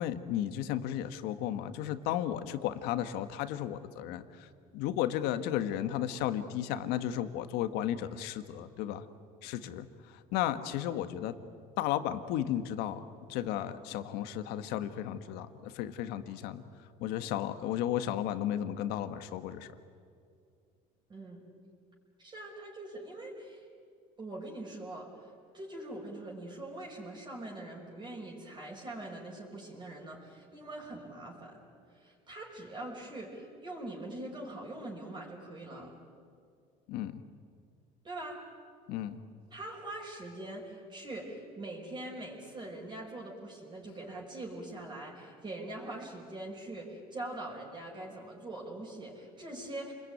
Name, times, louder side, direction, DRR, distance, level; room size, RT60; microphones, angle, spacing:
voice 1, 0.0-4.2 4.7-9.0 9.4-9.9 10.3-11.3 11.8-13.0 13.3-16.6 17.0-19.7 36.9-37.2 38.9-39.2, left 11 dB, 80° left, 10 dB, 1.6 m, -34 dB
voice 2, 21.1-21.4 22.2-23.7 24.2-31.6 31.9-35.9 38.0-38.4 39.5-49.9, right 1 dB, 25° right, -2 dB, 5.6 m, -43 dB
29.0 x 22.0 x 9.5 m, 2.4 s
cardioid pair, 115°, 16 cm